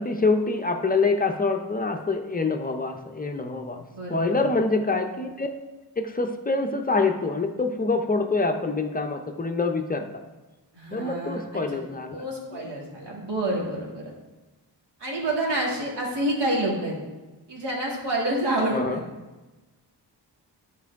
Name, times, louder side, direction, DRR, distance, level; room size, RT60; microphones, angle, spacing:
voice 1, 0.0-3.8 4.1-5.5 6.0-10.1 10.9-12.2 12.5-12.7 18.7-19.0, left 3 dB, 20° left, 5 dB, 0.5 m, -25 dB
voice 2, 3.9-4.5 10.7-11.6 12.1-14.1 15.0-16.9 17.5-19.0, right 1 dB, 80° right, -3 dB, 2.3 m, -28 dB
11.5 x 4.6 x 3.5 m, 1.2 s
wide cardioid pair, 135°, 41 cm